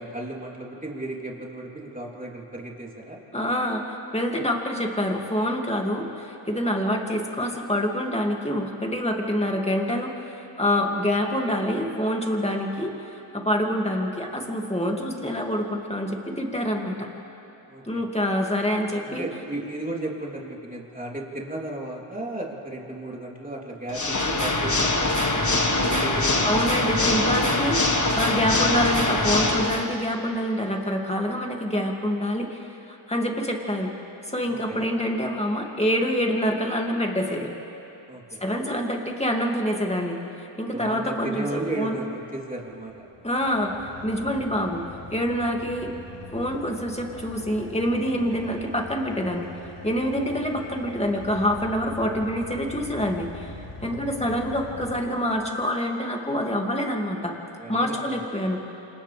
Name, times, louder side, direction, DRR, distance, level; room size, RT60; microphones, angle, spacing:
voice 1, 0.0-3.2 17.7-18.0 19.0-26.7 27.0-27.1 34.4-34.9 38.1-38.4 40.7-43.1 50.3-50.6 53.8-53.9 57.6-58.5, right 2 dB, 15° right, -3 dB, 3.4 m, -35 dB
voice 2, 3.3-17.1 17.9-19.3 26.4-33.9 34.2-37.5 38.4-40.2 40.6-42.0 43.2-45.9 46.3-49.5 49.8-53.5 53.8-57.4 57.7-58.6, equal, 15° left, 0 dB, 2.5 m, -26 dB
Water / Mechanisms, 23.9-29.9, left 2 dB, 35° left, 1.7 m, -23 dB
Car / Idling, 42.7-55.6, left 2 dB, 55° left, 3.3 m, -42 dB
28.5 x 27.0 x 3.5 m, 2.9 s
wide cardioid pair, 65°, 49 cm